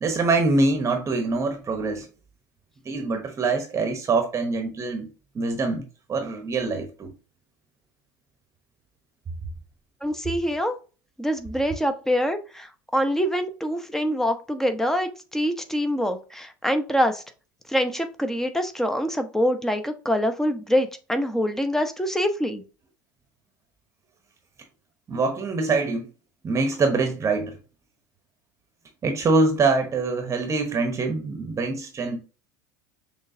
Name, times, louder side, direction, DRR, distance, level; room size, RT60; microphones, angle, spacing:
voice 1, 0.0-2.1 2.8-5.1 5.3-7.1 25.1-26.1 26.4-27.6 29.0-32.2, right 3 dB, 30° right, 1.0 m, -24 dB
voice 2, 10.0-10.7 11.2-17.2 17.7-22.6, equal, 5° left, 0.8 m, -25 dB
6.3 x 3.1 x 2.7 m
hypercardioid pair, 75°, 11 cm